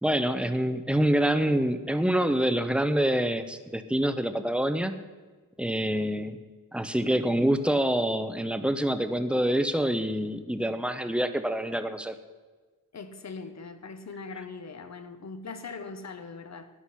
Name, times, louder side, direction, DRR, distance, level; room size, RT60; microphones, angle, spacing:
voice 1, 0.0-4.9 5.6-6.4 6.7-12.2, right 1 dB, 5° right, 10 dB, 0.7 m, -26 dB
voice 2, 12.9-16.7, left 4 dB, 50° left, 10 dB, 1.1 m, -41 dB
13.0 x 10.5 x 5.8 m, 1.4 s
wide cardioid pair, 155°, 34 cm